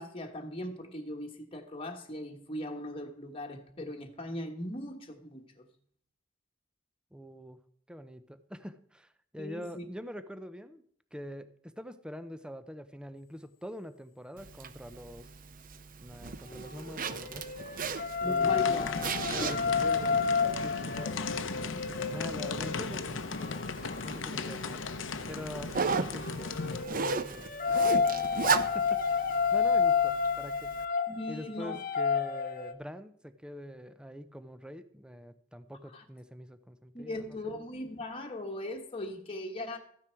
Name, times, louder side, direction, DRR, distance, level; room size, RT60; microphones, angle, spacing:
voice 1, 0.0-5.7 9.4-9.8 18.2-19.1 19.4-19.5 31.1-31.8 35.9-36.0 36.9-39.8, left 1 dB, 30° left, 1.4 m, -39 dB
voice 2, 7.1-7.6 7.9-10.8 11.1-15.3 16.0-17.5 18.2-18.8 19.2-21.2 21.6-23.6 24.0-27.5 27.9-30.7 31.3-37.5, equal, 5° right, 0.7 m, -45 dB
Zipper (clothing), 14.4-30.8, right 5 dB, 45° right, 0.7 m, -37 dB
sound 1, 16.5-24.8 26.0-32.7, left 6 dB, 45° left, 0.9 m, -31 dB
sound 2, 18.4-26.8, left 4 dB, 80° left, 0.8 m, -37 dB
13.5 x 9.7 x 4.5 m
head